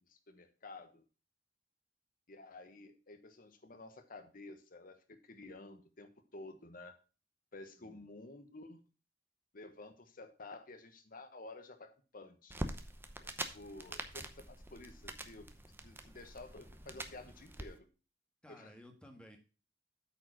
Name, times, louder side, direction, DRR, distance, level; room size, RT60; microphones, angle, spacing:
voice 1, 0.1-1.0 2.3-7.0 7.5-8.8 9.5-12.7 13.2-15.5 15.8-17.8 18.5-18.7, left 2 dB, 50° left, 8 dB, 1.2 m, -52 dB
voice 2, 7.8-8.1 18.4-19.4, equal, 5° left, 3 dB, 1.6 m, -56 dB
sound 1, 12.5-17.7, right 1 dB, 10° right, 0.8 m, -45 dB
8.6 x 5.0 x 6.0 m, 0.34 s
head